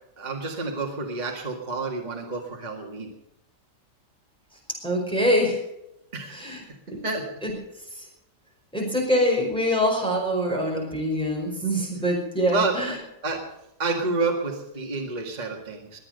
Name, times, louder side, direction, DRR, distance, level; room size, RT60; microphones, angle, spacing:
voice 1, 0.2-3.1 6.1-6.7 7.0-7.3 12.5-12.9 13.2-13.4 13.8-16.0, right 3 dB, 25° right, 1 dB, 2.0 m, -29 dB
voice 2, 4.8-5.6 6.3-6.6 7.4-7.5 8.7-12.9, equal, 5° left, -1 dB, 5.1 m, -24 dB
22.0 x 8.8 x 6.6 m, 0.84 s
omnidirectional pair, 1.8 m